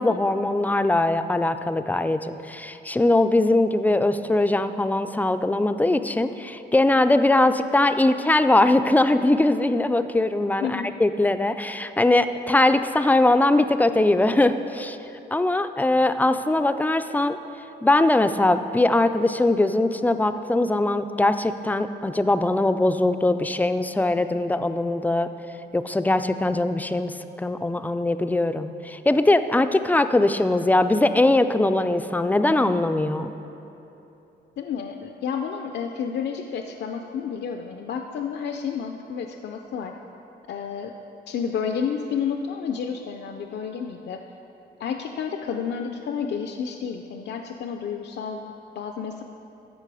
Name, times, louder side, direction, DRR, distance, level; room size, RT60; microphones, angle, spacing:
voice 1, 0.0-15.0 15.3-17.4 17.8-25.3 25.7-33.3, left 2 dB, 10° left, 9 dB, 0.3 m, -21 dB
voice 2, 34.6-39.9 40.5-40.9 41.3-44.2 44.8-49.2, left 7 dB, 70° left, 5 dB, 0.5 m, -30 dB
14.5 x 5.3 x 4.8 m, 2.9 s
cardioid pair, 105°, 18 cm